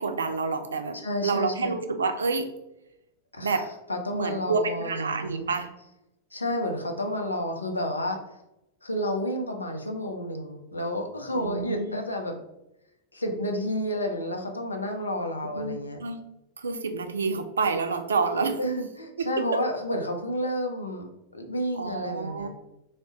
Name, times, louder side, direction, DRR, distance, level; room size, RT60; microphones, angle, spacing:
voice 1, 0.0-2.5 3.4-3.7 4.1-5.7 11.3-12.0 15.5-15.7 16.0-16.2 16.6-18.6 19.2-19.6 21.7-22.5, right 4 dB, 70° right, 7 dB, 0.4 m, -28 dB
voice 2, 1.0-1.7 3.3-3.5 3.9-5.5 6.3-8.2 8.8-12.3 13.1-16.0 18.6-21.1 21.3-22.5, equal, 80° left, 3 dB, 0.6 m, -30 dB
3.5 x 2.1 x 3.7 m, 0.87 s
figure-of-eight pair, 90°, 0 cm